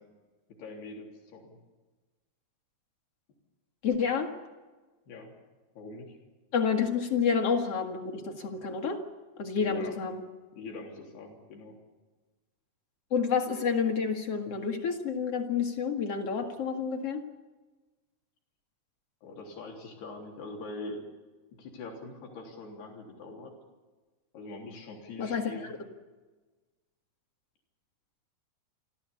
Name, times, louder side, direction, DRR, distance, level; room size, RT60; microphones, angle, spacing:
voice 1, 0.6-1.6 5.1-5.3 5.8-6.2 9.6-10.0 10.5-11.8 19.2-21.0 21.6-23.5 24.3-25.8, left 2 dB, 70° left, 1 dB, 5.4 m, -43 dB
voice 2, 3.8-4.3 6.5-9.0 9.4-10.2 13.1-17.2 25.2-25.7, left 6 dB, 45° left, 4 dB, 2.3 m, -29 dB
29.0 x 13.5 x 8.5 m, 1.3 s
omnidirectional pair, 4.8 m